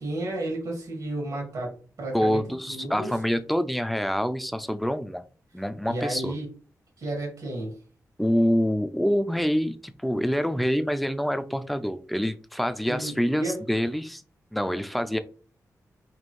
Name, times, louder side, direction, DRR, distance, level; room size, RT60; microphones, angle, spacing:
voice 1, 0.0-2.4 2.7-3.1 5.8-6.5 7.0-7.8 12.8-13.6, right 1 dB, 85° right, -1 dB, 1.9 m, -32 dB
voice 2, 2.1-5.2 5.5-6.3 8.2-14.2 14.5-15.2, equal, ahead, 10 dB, 0.4 m, -26 dB
4.2 x 2.7 x 3.1 m, 0.39 s
wide cardioid pair, 90°, 6 cm